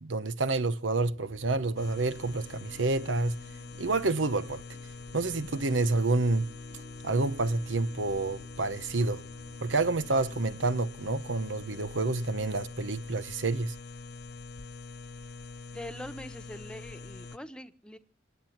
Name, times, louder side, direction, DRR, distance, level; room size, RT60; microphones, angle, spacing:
voice 1, 0.0-3.4 3.8-4.6 5.1-6.5 7.0-9.2 9.6-13.7, right 3 dB, 90° right, 0.9 m, -28 dB
sound 1, 1.1-10.8, equal, 35° right, 4.6 m, -55 dB
sound 2, 1.8-17.4, left 3 dB, 60° left, 0.8 m, -44 dB
voice 2, 15.7-18.0, left 1 dB, 5° left, 1.2 m, -43 dB
27.0 x 9.0 x 5.9 m
head